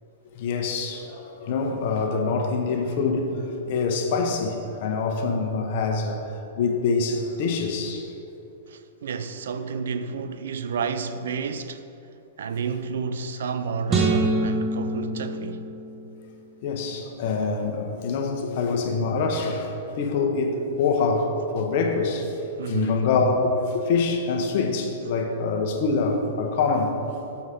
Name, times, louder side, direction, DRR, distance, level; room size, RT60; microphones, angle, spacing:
voice 1, 0.3-3.4 3.7-8.1 16.6-22.4 22.7-27.0, left 4 dB, 55° left, 1.0 m, -25 dB
voice 2, 8.7-11.8 12.4-15.7 22.6-23.0, right 5 dB, 80° right, 0.5 m, -31 dB
sound 1, 13.9-16.2, right 2 dB, 25° right, 1.2 m, -25 dB
7.0 x 4.9 x 6.1 m
hypercardioid pair, 135°, 0 cm